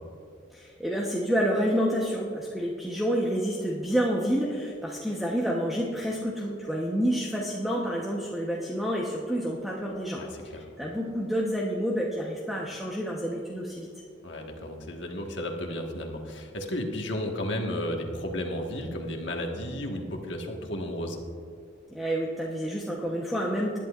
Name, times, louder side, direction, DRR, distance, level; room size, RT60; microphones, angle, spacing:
voice 1, 0.5-10.2 10.5-13.9 21.9-23.8, equal, ahead, -4 dB, 1.0 m, -29 dB
voice 2, 10.2-10.6 14.2-21.2, left 1 dB, 65° left, 2 dB, 1.6 m, -33 dB
19.5 x 10.5 x 2.5 m, 2.3 s
head